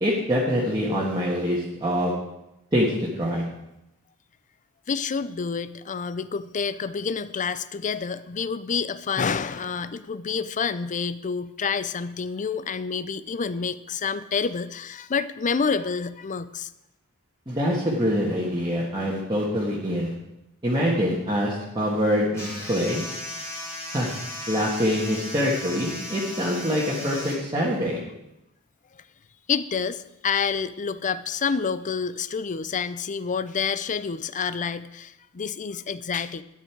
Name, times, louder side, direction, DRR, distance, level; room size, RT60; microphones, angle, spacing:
voice 1, 0.0-2.1 2.7-3.4 17.5-20.1 20.6-23.0 23.9-24.1 24.5-28.0, equal, 20° right, -6 dB, 1.7 m, -25 dB
voice 2, 4.9-16.7 29.5-36.4, left 5 dB, 35° left, 15 dB, 0.5 m, -28 dB
sound 1, 22.3-27.4, left 1 dB, 15° left, 2.9 m, -36 dB
12.5 x 9.4 x 4.6 m, 0.89 s
head